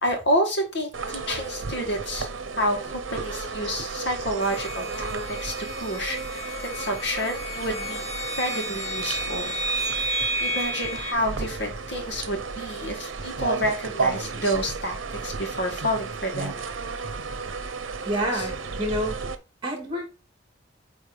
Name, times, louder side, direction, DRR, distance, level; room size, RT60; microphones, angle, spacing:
voice 1, 0.0-2.3 2.6-9.5 10.0-16.7 18.3-18.5, equal, 60° left, 2.1 m, -29 dB
sound 1, 0.9-19.3, right 4 dB, 80° right, 0.8 m, -33 dB
sound 2, 4.4-11.1, right 1 dB, 30° left, 1.5 m, -32 dB
voice 2, 18.1-19.2 19.6-20.1, equal, 25° right, 2.6 m, -28 dB
8.7 x 3.6 x 3.7 m
head